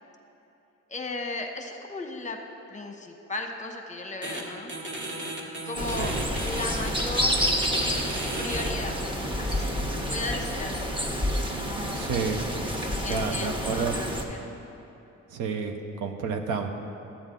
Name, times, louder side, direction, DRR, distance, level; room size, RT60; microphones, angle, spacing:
voice 1, 0.9-2.4 2.7-4.7 5.6-7.6 8.4-9.1 9.4-10.9 13.0-14.5, left 3 dB, 25° left, 4 dB, 1.0 m, -36 dB
sound 1, 4.2-4.4 4.7-8.7, right 2 dB, 40° right, 1.7 m, -35 dB
sound 2, 5.7-14.2, equal, 15° right, 1.2 m, -29 dB
voice 2, 11.9-12.4 13.1-13.9 15.3-15.7 16.0-16.7, right 5 dB, 85° right, 5 dB, 0.8 m, -29 dB
12.5 x 8.7 x 3.8 m, 2.9 s
cardioid pair, 90°, 30 cm